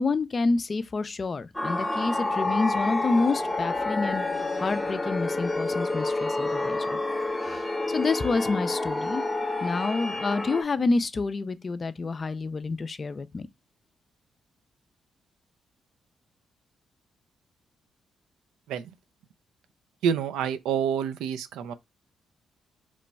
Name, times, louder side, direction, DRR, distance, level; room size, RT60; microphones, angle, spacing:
voice 1, 0.0-4.2 4.6-7.0 7.4-9.2 9.6-13.5, left 3 dB, 40° left, 0.4 m, -28 dB
sound 1, 1.5-10.6, left 2 dB, 15° left, 0.7 m, -29 dB
voice 2, 20.0-21.7, right 8 dB, 90° right, 0.3 m, -27 dB
3.0 x 2.2 x 4.0 m
supercardioid pair, 65°, 0 cm